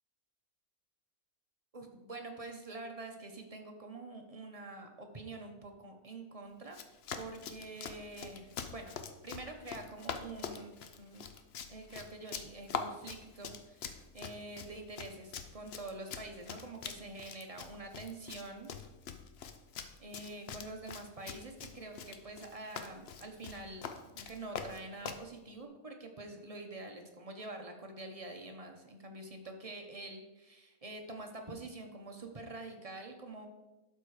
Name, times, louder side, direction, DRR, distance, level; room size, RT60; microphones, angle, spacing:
voice 1, 1.7-6.8 7.1-8.9 9.2-11.2 11.7-18.7 20.0-33.5, right 2 dB, 30° right, 3 dB, 0.9 m, -46 dB
Run, 6.7-25.3, left 7 dB, 55° left, 0.8 m, -44 dB
12.0 x 4.4 x 4.8 m, 1.1 s
omnidirectional pair, 1.5 m